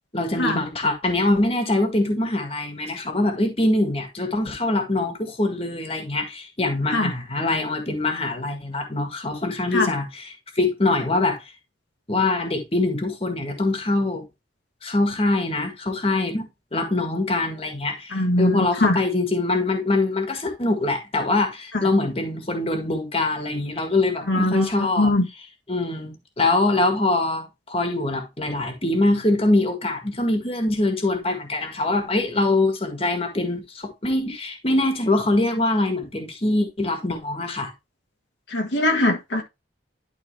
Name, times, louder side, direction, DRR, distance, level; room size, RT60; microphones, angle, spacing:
voice 1, 0.1-11.4 12.1-14.2 14.8-16.4 16.7-25.1 25.7-37.7, left 2 dB, 30° left, 1.7 m, -23 dB
voice 2, 18.1-19.0 24.3-24.7 25.0-25.3 38.5-39.4, left 1 dB, 70° left, 1.6 m, -21 dB
11.5 x 4.3 x 3.3 m
head